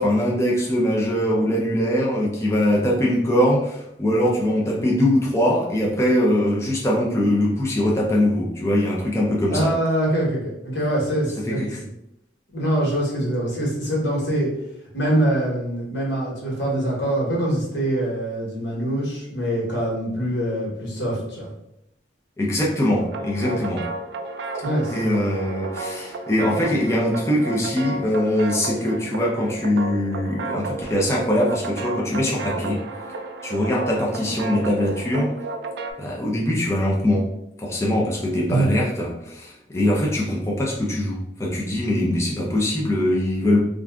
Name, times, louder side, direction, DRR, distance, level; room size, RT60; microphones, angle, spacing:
voice 1, 0.0-9.7 11.5-11.8 22.4-23.8 24.9-32.8 33.4-35.3 36.0-37.2 37.6-43.6, left 1 dB, 15° left, -4 dB, 0.5 m, -22 dB
voice 2, 9.5-11.6 12.5-14.5 14.9-21.5 23.5-23.6 24.6-24.9 38.5-38.7, right 1 dB, 85° left, -4 dB, 1.3 m, -24 dB
sound 1, 23.0-35.9, right 3 dB, 65° right, 0.3 m, -32 dB
2.5 x 2.3 x 3.5 m, 0.81 s
head